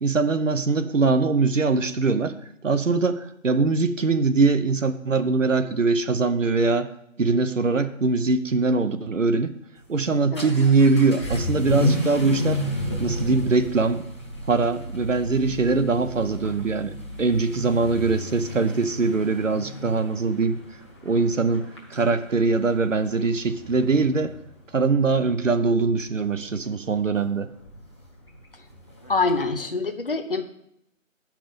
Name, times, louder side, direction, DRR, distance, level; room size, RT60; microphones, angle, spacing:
voice 1, 0.0-2.3 2.6-6.9 7.2-9.5 9.9-12.6 13.0-14.1 14.5-20.6 21.0-24.3 24.7-27.5, right 4 dB, 65° right, 10 dB, 0.7 m, -22 dB
Vehicle / Accelerating revving vroom, 9.8-29.6, left 1 dB, 20° left, 1.0 m, -33 dB
voice 2, 29.1-30.4, left 3 dB, 45° left, 6 dB, 0.6 m, -25 dB
8.6 x 5.9 x 5.1 m, 0.76 s
figure-of-eight pair, 165°, 41 cm